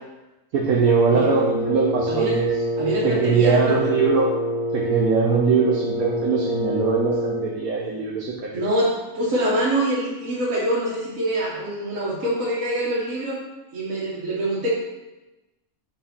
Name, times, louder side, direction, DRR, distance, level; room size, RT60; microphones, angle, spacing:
voice 1, 0.5-2.5 3.0-4.3 4.7-8.6, right 5 dB, 85° right, -2 dB, 1.3 m, -21 dB
Wind instrument woodwind instrument, 0.8-7.6, equal, 30° left, 1.3 m, -26 dB
voice 2, 2.8-3.8 8.5-13.4 13.7-14.7, right 1 dB, 70° right, -6 dB, 1.6 m, -25 dB
4.7 x 4.1 x 5.8 m, 1.0 s
omnidirectional pair, 1.5 m